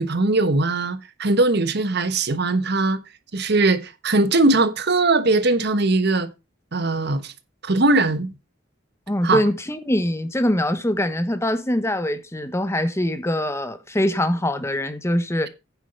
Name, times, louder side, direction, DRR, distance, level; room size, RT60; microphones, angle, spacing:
voice 1, 0.0-3.0 3.3-6.3 6.7-7.3 7.6-8.3 9.2-9.4, right 2 dB, 55° right, 1.2 m, -20 dB
voice 2, 9.1-15.5, left 1 dB, 15° left, 1.1 m, -23 dB
9.8 x 7.2 x 5.3 m
head